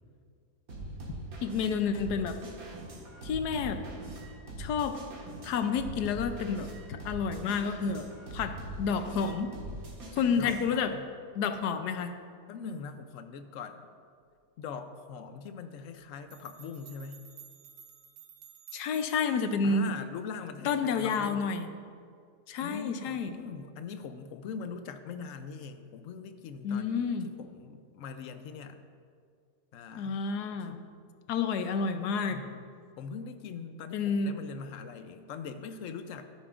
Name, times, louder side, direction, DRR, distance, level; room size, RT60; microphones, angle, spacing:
sound 1, 0.7-10.8, right 1 dB, 65° right, 2.1 m, -42 dB
voice 1, 1.4-2.4 3.2-3.8 4.6-5.0 5.4-8.1 8.3-8.5 8.8-9.5 10.1-10.9 11.3-12.1 18.7-19.9 20.6-21.7 22.5-23.4 26.6-27.3 30.0-30.8 31.3-32.4 33.9-34.3, left 5 dB, 85° left, 8 dB, 1.2 m, -30 dB
voice 2, 10.4-11.0 12.5-13.9 14.6-17.2 19.6-21.5 22.6-28.8 29.7-30.9 32.3-32.6 33.0-36.3, left 5 dB, 65° left, 9 dB, 0.9 m, -42 dB
sound 2, 16.3-19.5, right 9 dB, 80° right, 1.5 m, -52 dB
13.5 x 9.8 x 2.5 m, 2.2 s
omnidirectional pair, 1.7 m